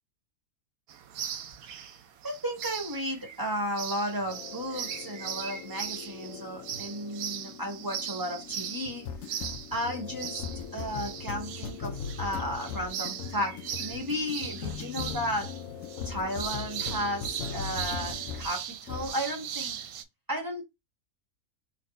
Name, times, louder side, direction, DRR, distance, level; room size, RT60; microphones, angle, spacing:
sound 1, 0.9-20.0, right 9 dB, 70° right, 1.0 m, -39 dB
voice 1, 2.2-9.4 9.7-10.4 10.7-15.5 16.0-19.8 20.3-20.6, equal, 15° right, 1.1 m, -34 dB
sound 2, 4.3-18.5 18.9-19.2, left 7 dB, 65° left, 0.9 m, -40 dB
4.1 x 2.9 x 3.3 m
omnidirectional pair, 1.6 m